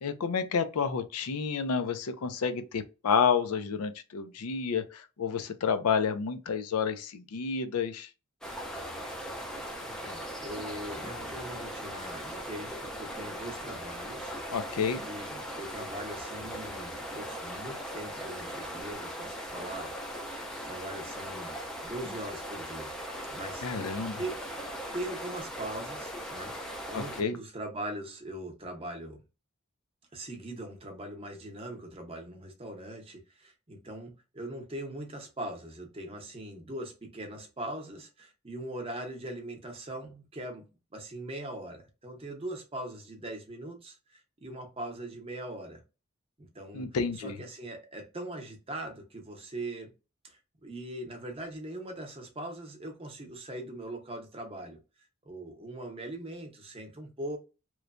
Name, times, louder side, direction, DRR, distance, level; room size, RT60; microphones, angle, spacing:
voice 1, 0.0-8.1 14.5-15.1 23.6-24.2 26.9-27.4 46.7-47.3, left 6 dB, 85° left, 0.5 m, -30 dB
sound 1, 8.4-27.2, equal, 5° left, 0.4 m, -39 dB
voice 2, 9.8-14.3 15.0-20.3 20.6-21.5 21.8-22.9 23.3-23.7 24.2-24.4 24.9-29.2 30.1-40.7 40.9-45.8 46.4-46.9 47.1-49.9 50.2-54.8 55.2-57.4, right 1 dB, 25° right, 0.7 m, -41 dB
3.1 x 2.1 x 2.4 m
head